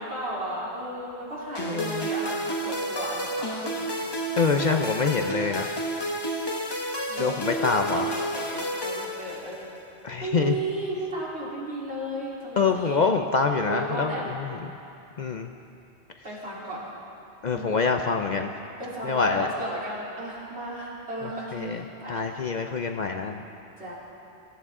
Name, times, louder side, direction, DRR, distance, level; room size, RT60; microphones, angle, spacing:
voice 1, 0.0-3.9 7.1-9.8 10.2-13.1 13.7-14.2 16.2-16.8 17.5-17.8 18.8-22.2 23.8-23.9, right 1 dB, 80° right, -7 dB, 3.8 m, -34 dB
sound 1, 1.5-9.8, right 1 dB, 25° left, 0.9 m, -31 dB
voice 2, 1.6-2.1 4.4-5.7 7.2-8.1 10.0-10.5 12.6-14.7 15.2-15.5 17.4-18.5 19.0-19.5 21.5-21.8 22.1-23.4, left 4 dB, 50° left, 5 dB, 0.6 m, -25 dB
22.0 x 13.0 x 3.7 m, 2.8 s
omnidirectional pair, 1.1 m